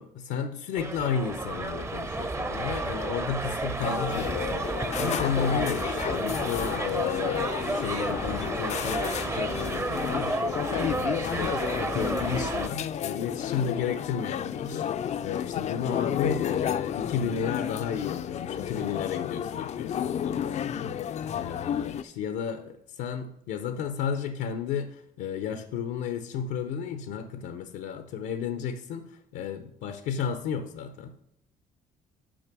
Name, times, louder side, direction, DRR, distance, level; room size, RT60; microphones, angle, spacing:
voice 1, 0.0-31.2, left 7 dB, 85° left, 8 dB, 0.7 m, -33 dB
sound 1, 0.8-12.7, right 2 dB, 15° right, 0.6 m, -31 dB
sound 2, 3.8-22.0, left 9 dB, 40° left, 0.4 m, -32 dB
6.3 x 6.1 x 6.0 m, 0.74 s
cardioid pair, 110°, 17 cm